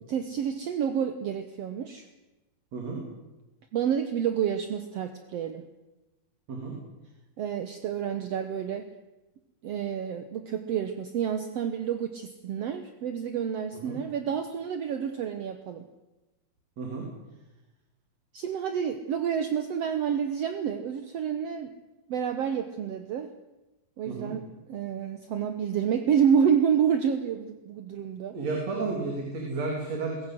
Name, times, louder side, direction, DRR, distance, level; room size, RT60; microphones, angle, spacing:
voice 1, 0.1-2.1 3.7-5.6 7.4-8.9 9.6-15.9 18.3-21.7 22.1-23.3 24.0-28.4, right 8 dB, 70° right, 8 dB, 1.6 m, -29 dB
voice 2, 2.7-3.0 6.5-6.8 13.7-14.0 16.8-17.1 24.1-24.3 28.3-30.3, right 3 dB, 45° right, 0 dB, 4.3 m, -32 dB
22.5 x 16.0 x 7.9 m, 1.1 s
omnidirectional pair, 4.3 m